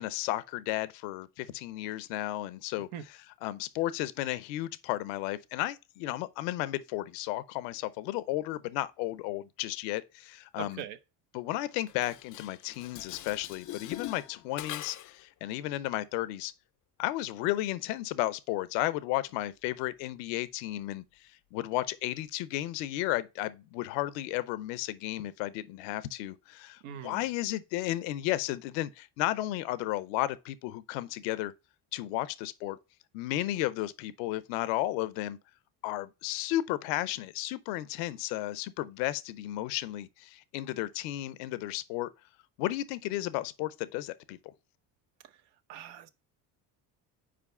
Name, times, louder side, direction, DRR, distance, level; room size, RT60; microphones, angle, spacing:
voice 1, 0.0-2.9 3.4-10.8 11.3-16.5 17.0-21.0 21.5-31.5 31.9-32.8 33.1-35.4 35.8-42.1 42.6-44.4, left 15 dB, 80° left, 0.7 m, -33 dB
voice 2, 10.5-11.0 26.8-27.2 45.7-46.1, right 10 dB, 70° right, 0.9 m, -41 dB
Dishes pots and pans, 11.9-15.2, left 14 dB, 40° left, 0.4 m, -43 dB
5.0 x 4.6 x 5.4 m
hypercardioid pair, 70°, 49 cm